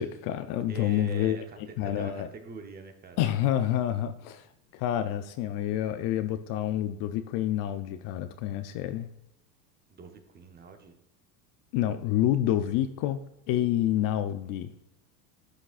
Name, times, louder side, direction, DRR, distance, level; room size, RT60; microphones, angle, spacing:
voice 1, 0.0-1.4 1.8-2.3 3.2-4.5 4.7-9.1 11.7-13.2 13.5-14.7, left 11 dB, 45° left, 10 dB, 0.5 m, -28 dB
voice 2, 0.7-3.2 9.9-10.9, right 4 dB, 20° right, 6 dB, 0.7 m, -44 dB
11.5 x 6.0 x 2.4 m, 0.85 s
supercardioid pair, 125°, 50 cm